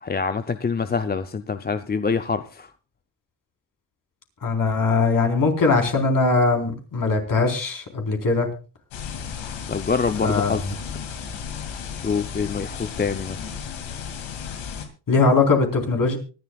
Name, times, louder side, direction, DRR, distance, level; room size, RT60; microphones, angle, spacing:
voice 1, 0.0-2.7 9.7-10.6 10.9-11.0 12.0-13.4, left 5 dB, 20° left, 9 dB, 0.6 m, -25 dB
voice 2, 4.4-8.5 10.2-10.6 15.1-16.2, left 3 dB, 45° left, 2 dB, 4.3 m, -20 dB
sound 1, 8.9-14.9, left 6 dB, 90° left, 2.5 m, -34 dB
24.5 x 11.0 x 2.4 m, 0.34 s
cardioid pair, 95°, 45 cm